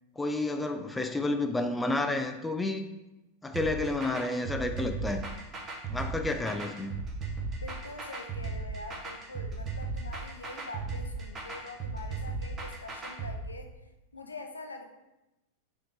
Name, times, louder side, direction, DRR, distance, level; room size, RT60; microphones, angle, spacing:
voice 1, 0.2-2.9 3.4-5.2 5.9-6.9, left 2 dB, 10° left, 6 dB, 0.3 m, -30 dB
sound 1, 3.5-13.3, right 4 dB, 25° right, 1.0 m, -36 dB
voice 2, 7.6-13.7 14.1-14.9, left 2 dB, 80° left, 5 dB, 0.5 m, -44 dB
5.1 x 3.4 x 2.9 m, 0.98 s
figure-of-eight pair, 90°, 0 cm